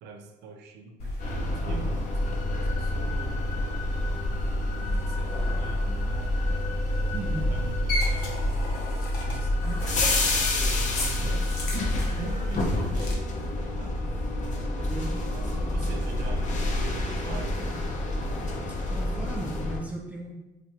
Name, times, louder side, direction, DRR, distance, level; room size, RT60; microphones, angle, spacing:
voice 1, 0.0-3.8 4.2-6.3 6.7-8.6 9.2-11.7 12.1-13.2 13.5-17.6, right 4 dB, 80° right, 4 dB, 0.5 m, -43 dB
sound 1, 1.0-13.1, left 1 dB, 70° left, 0.8 m, -30 dB
sound 2, 1.2-19.8, left 2 dB, 45° left, 0.5 m, -30 dB
voice 2, 7.1-7.5 14.9-15.1 18.9-20.3, right 1 dB, 10° right, -2 dB, 0.5 m, -36 dB
2.9 x 2.4 x 2.9 m, 1.0 s
cardioid pair, 110°, 17 cm